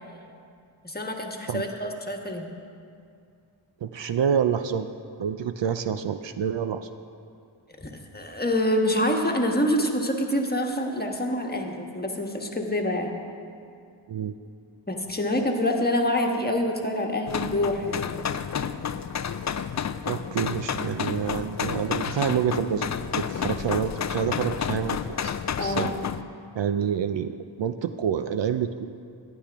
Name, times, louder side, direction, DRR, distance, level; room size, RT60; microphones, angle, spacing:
voice 1, 0.8-2.5 7.8-13.2 14.9-18.0 25.6-26.0, left 1 dB, 20° left, 2 dB, 1.4 m, -26 dB
voice 2, 3.8-4.9 5.2-6.9 14.1-14.3 20.1-22.9 23.2-25.3 25.6-25.9 26.6-28.9, right 8 dB, 60° right, 10 dB, 0.5 m, -27 dB
sound 1, 17.3-26.2, left 7 dB, 35° left, 0.4 m, -30 dB
15.5 x 10.0 x 3.5 m, 2.4 s
cardioid pair, 45°, 50 cm